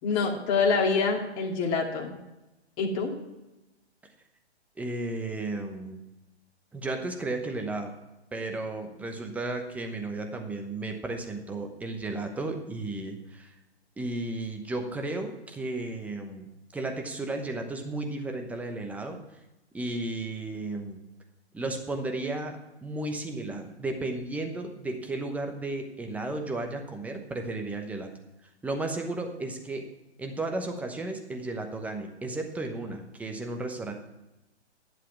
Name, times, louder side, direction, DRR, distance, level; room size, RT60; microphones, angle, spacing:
voice 1, 0.0-2.1 2.8-3.1, left 4 dB, 30° left, 1 dB, 2.4 m, -26 dB
voice 2, 4.8-6.0 6.7-7.9 8.3-13.5 14.0-19.2 19.7-21.0 21.5-28.1 28.6-29.8 30.2-33.9, right 2 dB, 5° right, 4 dB, 0.9 m, -34 dB
11.5 x 7.7 x 7.2 m, 0.99 s
hypercardioid pair, 135°, 34 cm